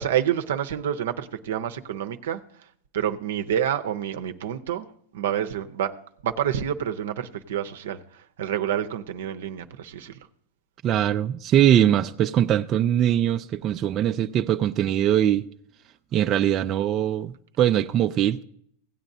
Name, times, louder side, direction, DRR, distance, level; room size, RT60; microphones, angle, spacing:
voice 1, 0.0-2.7 2.9-4.9 5.1-5.9 6.2-10.2, right 10 dB, 80° right, 0.7 m, -28 dB
voice 2, 10.8-15.4 16.1-18.4, right 11 dB, 35° right, 0.4 m, -22 dB
17.0 x 8.8 x 2.7 m
supercardioid pair, 130°, 0 cm